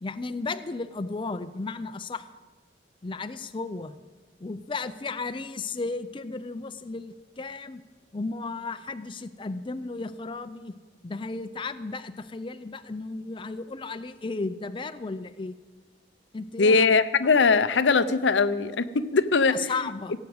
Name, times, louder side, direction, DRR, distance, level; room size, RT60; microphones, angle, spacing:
voice 1, 0.0-2.2 3.0-3.9 4.4-7.8 8.1-10.7 11.0-15.5 16.3-16.9 19.5-20.1, left 3 dB, 30° left, 10 dB, 0.5 m, -34 dB
voice 2, 16.6-19.7, left 4 dB, 80° left, 12 dB, 0.7 m, -21 dB
16.5 x 8.4 x 7.8 m, 1.3 s
head